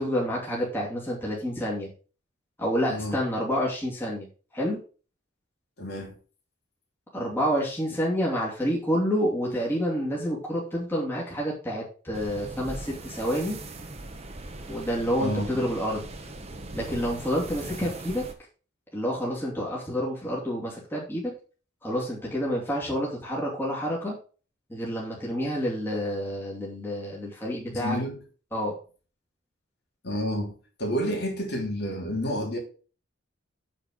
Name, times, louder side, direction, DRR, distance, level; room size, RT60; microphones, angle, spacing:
voice 1, 0.0-1.9 2.6-4.3 4.5-4.8 7.1-13.6 14.7-16.1 16.7-18.2 18.9-21.3 21.8-24.2 24.7-28.0 28.5-28.8, equal, 10° left, 2.6 m, -28 dB
voice 2, 5.8-6.2 15.2-15.6 27.7-28.2 30.0-30.5 30.8-32.6, equal, 50° left, 3.2 m, -29 dB
sound 1, 12.1-18.3, right 2 dB, 30° right, 1.1 m, -40 dB
8.9 x 4.4 x 6.3 m
head